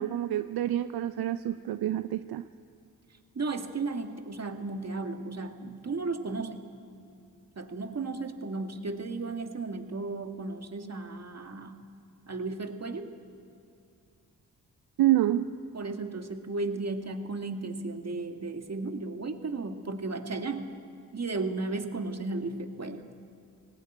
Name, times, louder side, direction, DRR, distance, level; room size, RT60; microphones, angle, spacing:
voice 1, 0.0-2.4 15.0-15.6, right 13 dB, 75° right, 12 dB, 0.6 m, -27 dB
voice 2, 3.3-6.6 7.6-11.8 12.3-13.1 15.7-20.7 21.1-23.1, right 3 dB, 40° right, 6 dB, 2.0 m, -34 dB
18.0 x 16.0 x 9.1 m, 2.5 s
supercardioid pair, 45°, 38 cm